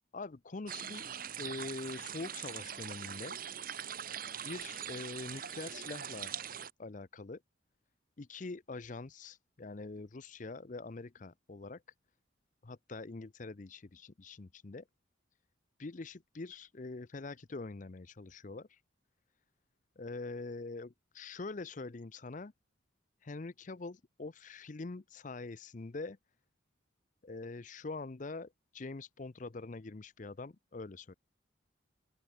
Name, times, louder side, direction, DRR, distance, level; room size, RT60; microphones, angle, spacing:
voice 1, 0.1-1.1 1.4-3.4 4.4-6.3 6.8-7.4 8.2-11.8 12.6-14.8 15.8-18.8 20.0-22.5 23.2-26.2 27.2-31.1, left 3 dB, 40° left, 0.6 m, -44 dB
sound 1, 0.7-6.7, right 8 dB, 45° right, 1.7 m, -42 dB
open air
head